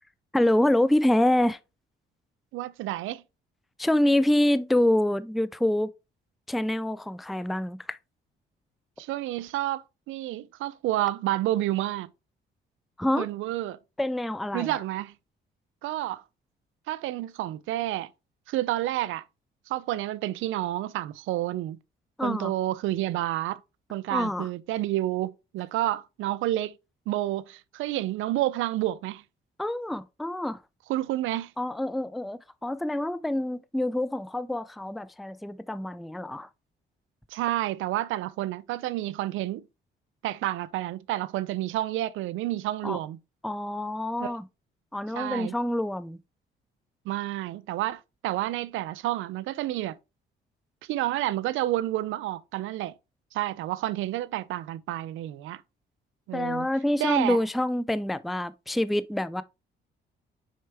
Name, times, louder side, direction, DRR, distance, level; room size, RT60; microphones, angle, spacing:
voice 1, 0.3-1.6 3.8-5.9 6.5-8.0 13.0-13.3 14.0-14.7 22.2-22.5 24.1-24.5 29.6-30.6 31.6-36.5 42.8-43.0 43.4-44.4 44.9-46.2 56.3-59.4, left 1 dB, ahead, 0.3 m, -26 dB
voice 2, 2.5-3.2 9.0-12.1 13.2-13.8 14.5-15.1 15.8-16.2 16.9-18.1 18.5-19.2 19.7-21.8 22.2-23.6 23.9-26.7 27.1-29.2 30.9-31.5 37.3-39.6 40.2-43.2 44.2-44.3 45.1-45.5 47.1-50.0 50.9-52.9 53.3-55.6 56.3-56.7 57.0-57.4, right 15 dB, 90° right, 0.5 m, -29 dB
6.4 x 4.4 x 3.4 m
cardioid pair, 90°, 20 cm